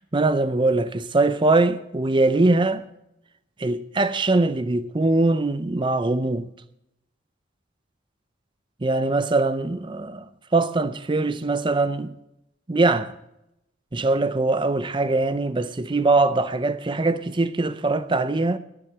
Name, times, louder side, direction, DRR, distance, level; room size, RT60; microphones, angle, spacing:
voice 1, 0.1-2.8 3.6-6.5 8.8-12.1 12.7-13.1 13.9-18.6, right 2 dB, 25° right, 0.5 m, -22 dB
11.0 x 10.5 x 7.1 m
head